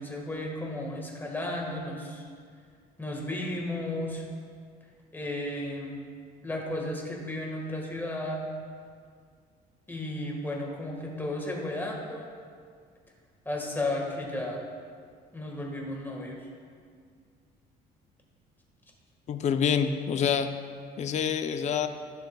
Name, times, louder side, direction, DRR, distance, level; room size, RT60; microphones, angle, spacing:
voice 1, 0.0-2.3 3.0-4.2 5.1-6.0 6.4-8.4 9.9-12.3 13.4-14.6 15.3-16.4, left 1 dB, 10° left, -1 dB, 1.5 m, -34 dB
voice 2, 19.3-20.5 21.0-21.9, left 7 dB, 45° left, 8 dB, 0.5 m, -26 dB
14.0 x 6.5 x 2.3 m, 2.1 s
cardioid pair, 110°, 17 cm